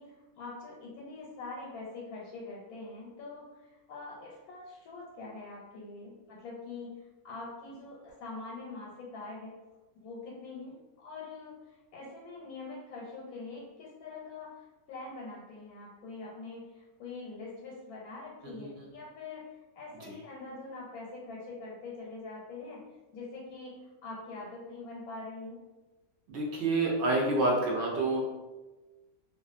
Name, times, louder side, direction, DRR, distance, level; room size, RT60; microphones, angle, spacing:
voice 1, 0.0-7.0 7.2-9.6 9.9-11.6 11.9-19.4 19.7-22.8 23.1-23.8 24.0-25.6, left 3 dB, 85° left, -4 dB, 1.1 m, -44 dB
voice 2, 18.4-18.9 20.0-20.1 26.3-28.2, right 2 dB, 65° right, -2 dB, 0.7 m, -28 dB
2.4 x 2.4 x 2.4 m, 1.2 s
omnidirectional pair, 1.5 m